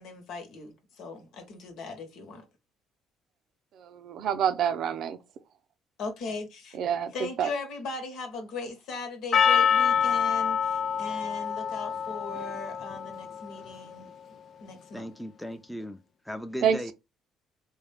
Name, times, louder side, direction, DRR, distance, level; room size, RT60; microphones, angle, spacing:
voice 1, 0.0-2.4 6.0-6.8 7.1-14.1 14.6-15.1, left 3 dB, 75° left, 1.1 m, -38 dB
voice 2, 3.8-5.2 6.7-7.5 16.6-16.8, right 8 dB, 65° right, 0.5 m, -27 dB
Percussion, 9.3-13.9, left 7 dB, 50° left, 0.4 m, -26 dB
voice 3, 14.9-16.9, equal, 5° left, 0.6 m, -37 dB
3.5 x 2.3 x 3.4 m
supercardioid pair, 85°, 0 cm